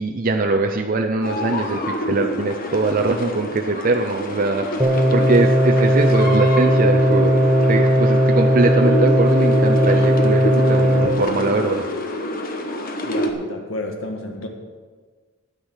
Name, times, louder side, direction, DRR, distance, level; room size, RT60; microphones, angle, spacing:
voice 1, 0.0-7.3 7.7-11.8, right 3 dB, 45° right, 3 dB, 0.6 m, -22 dB
sound 1, 1.2-13.3, equal, 45° left, 1.2 m, -27 dB
sound 2, 4.8-11.1, equal, 5° right, 1.2 m, -17 dB
voice 2, 13.0-14.5, left 1 dB, 70° left, 3 dB, 1.6 m, -31 dB
10.0 x 9.7 x 6.4 m, 1.5 s
head